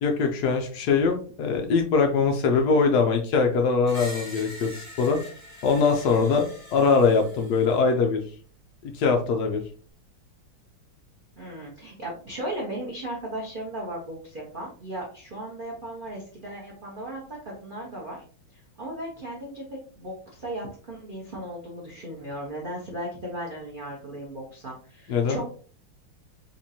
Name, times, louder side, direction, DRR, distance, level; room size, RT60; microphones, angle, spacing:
voice 1, 0.0-5.2 5.6-8.2 8.8-9.6 25.1-25.4, left 4 dB, 70° left, 4 dB, 0.9 m, -22 dB
Screech, 3.8-7.9, left 1 dB, 15° left, 1.2 m, -43 dB
voice 2, 11.4-18.2 18.5-19.6 20.0-25.5, right 1 dB, 90° right, -3 dB, 0.4 m, -36 dB
4.2 x 2.5 x 2.8 m, 0.43 s
omnidirectional pair, 2.2 m